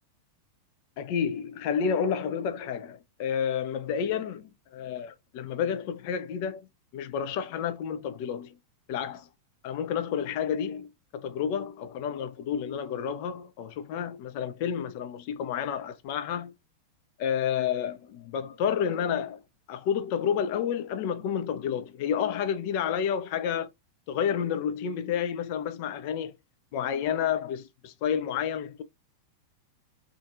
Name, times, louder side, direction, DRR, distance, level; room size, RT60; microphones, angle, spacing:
voice 1, 1.0-6.7 6.9-8.6 8.9-9.3 9.6-10.9 11.1-16.5 17.2-19.4 19.7-23.7 24.1-26.3 26.7-28.8, left 8 dB, 45° left, 0.4 m, -30 dB
2.5 x 2.4 x 2.4 m
figure-of-eight pair, 90°, 0 cm